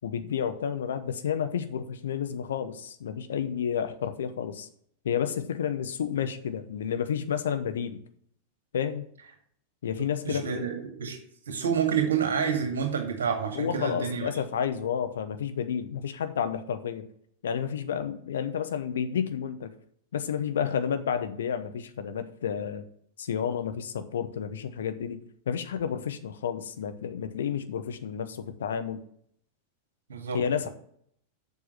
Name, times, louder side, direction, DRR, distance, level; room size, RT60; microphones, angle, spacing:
voice 1, 0.0-4.7 5.0-8.0 8.7-9.1 9.8-10.7 13.5-17.1 17.4-19.7 20.1-22.8 23.2-25.2 25.5-29.0 30.3-30.7, left 8 dB, 65° left, 9 dB, 0.9 m, -30 dB
voice 2, 10.2-11.2 11.5-14.3 30.1-30.4, right 7 dB, 65° right, 3 dB, 2.1 m, -28 dB
7.2 x 6.1 x 7.6 m, 0.65 s
figure-of-eight pair, 90°, 0 cm